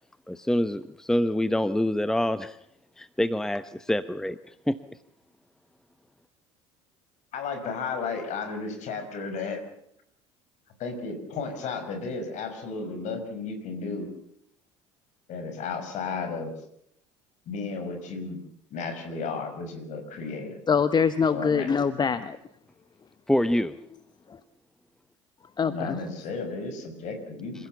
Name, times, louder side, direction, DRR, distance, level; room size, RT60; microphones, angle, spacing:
voice 1, 0.3-2.6 3.0-4.8 23.3-23.8, left 1 dB, 5° left, 14 dB, 0.9 m, -26 dB
voice 2, 7.3-9.6 10.8-14.1 15.3-16.5 17.5-18.4 18.7-20.6 21.3-21.7 25.7-27.7, left 4 dB, 50° left, 8 dB, 5.5 m, -33 dB
voice 3, 20.7-22.4 25.6-26.0, left 6 dB, 30° left, 13 dB, 1.1 m, -24 dB
27.5 x 16.0 x 7.0 m, 0.73 s
figure-of-eight pair, 65°, 15 cm